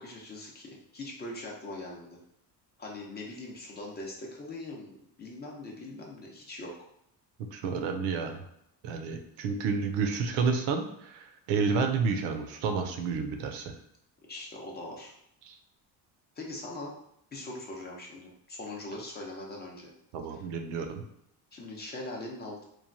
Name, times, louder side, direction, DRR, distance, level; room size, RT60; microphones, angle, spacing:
voice 1, 0.0-2.2 2.8-6.9 14.3-15.1 16.4-16.9 17.3-19.9 20.3-20.4 21.5-22.6, left 2 dB, 25° left, -1 dB, 0.5 m, -41 dB
voice 2, 7.5-8.4 8.8-13.7 15.5-15.6 20.1-21.0, right 5 dB, 80° right, 5 dB, 0.6 m, -30 dB
3.0 x 2.2 x 2.5 m, 0.74 s
cardioid pair, 115°, 41 cm